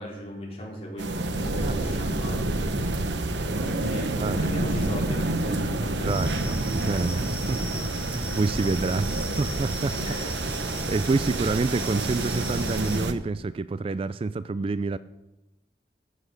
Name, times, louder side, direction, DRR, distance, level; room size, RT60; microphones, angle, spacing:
voice 1, 0.0-3.5 3.8-6.3 10.0-10.5, equal, 35° left, -3 dB, 4.2 m, -38 dB
sound 1, 1.0-13.1, right 2 dB, 85° right, 1.0 m, -28 dB
voice 2, 6.0-7.6 8.0-10.0 10.9-15.0, right 3 dB, 30° right, 15 dB, 0.3 m, -28 dB
sound 2, 6.1-13.0, equal, 5° right, 1.9 m, -36 dB
14.5 x 7.5 x 6.6 m, 0.96 s
head